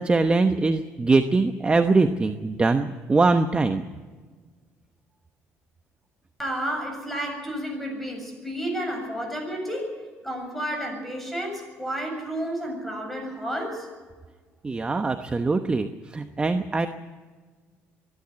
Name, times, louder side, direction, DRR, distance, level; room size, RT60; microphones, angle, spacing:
voice 1, 0.0-3.8 14.6-16.9, right 3 dB, 20° right, 8 dB, 1.0 m, -22 dB
voice 2, 6.4-13.9, right 1 dB, 5° left, 3 dB, 7.7 m, -31 dB
24.0 x 12.0 x 9.5 m, 1.5 s
cardioid pair, 110°, 5 cm